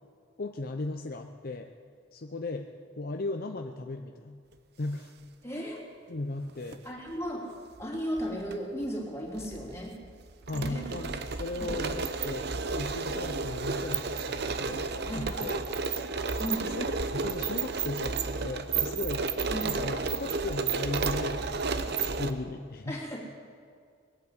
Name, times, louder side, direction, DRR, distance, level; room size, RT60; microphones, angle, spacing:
voice 1, 0.4-1.7 2.1-2.7 3.0-4.4 4.8-5.1 6.1-6.8 10.5-14.8 15.1-15.6 16.4-19.3 19.6-23.0, left 2 dB, 50° left, 5 dB, 0.6 m, -37 dB
voice 2, 5.4-5.8 6.8-10.0 10.5-11.2 11.6-11.8 15.0-15.5 16.4-16.8 19.5-19.7 22.9-23.2, equal, 15° left, -3 dB, 3.0 m, -36 dB
sound 1, 6.5-6.8 7.8-8.6 8.8-8.9 9.4-22.3, right 4 dB, 55° right, 0.8 m, -32 dB
21.0 x 8.5 x 8.2 m, 2.1 s
head